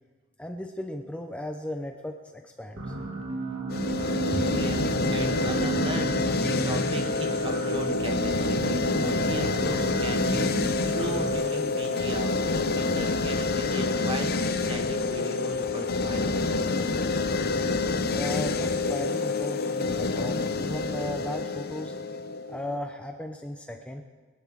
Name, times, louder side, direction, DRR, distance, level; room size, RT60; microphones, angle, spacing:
voice 1, 0.4-2.9 18.1-21.9 22.5-24.0, left 1 dB, 5° left, 4 dB, 0.7 m, -36 dB
sound 1, 2.8-11.3, right 3 dB, 70° right, 2.4 m, -33 dB
sound 2, 3.7-22.8, left 3 dB, 50° left, 0.8 m, -27 dB
voice 2, 4.3-16.5, right 1 dB, 25° right, 3 dB, 1.5 m, -37 dB
24.0 x 11.0 x 3.6 m, 1.4 s
head